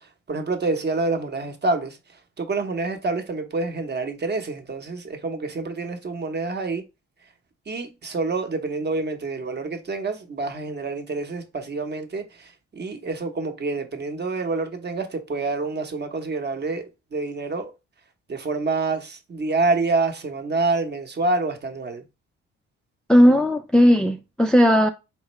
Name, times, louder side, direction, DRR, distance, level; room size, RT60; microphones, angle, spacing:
voice 1, 0.3-2.0 2.4-6.8 7.7-17.7 18.3-22.0, right 3 dB, 35° right, 0.9 m, -27 dB
voice 2, 23.1-24.9, equal, 5° left, 0.4 m, -16 dB
4.3 x 3.6 x 3.1 m
cardioid pair, 90°, 30 cm